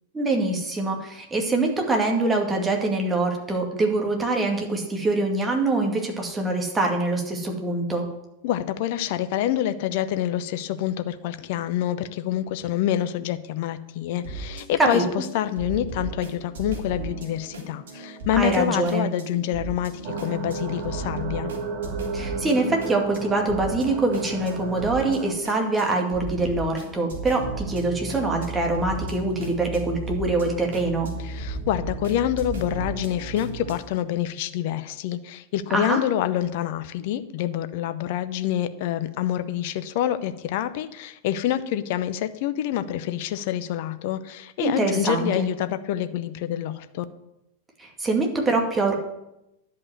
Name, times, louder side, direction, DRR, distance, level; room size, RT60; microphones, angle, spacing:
voice 1, 0.1-8.1 14.8-15.0 18.4-19.1 22.1-31.1 35.7-36.0 44.6-45.5 47.8-48.9, right 2 dB, 15° right, 2 dB, 2.3 m, -24 dB
voice 2, 8.4-21.5 31.2-47.0, left 11 dB, 50° left, 12 dB, 0.7 m, -27 dB
sound 1, 14.2-33.8, right 3 dB, 60° right, 2.5 m, -36 dB
sound 2, 20.0-25.3, right 4 dB, 45° right, 1.6 m, -33 dB
11.0 x 5.4 x 8.0 m, 0.88 s
figure-of-eight pair, 90°, 0 cm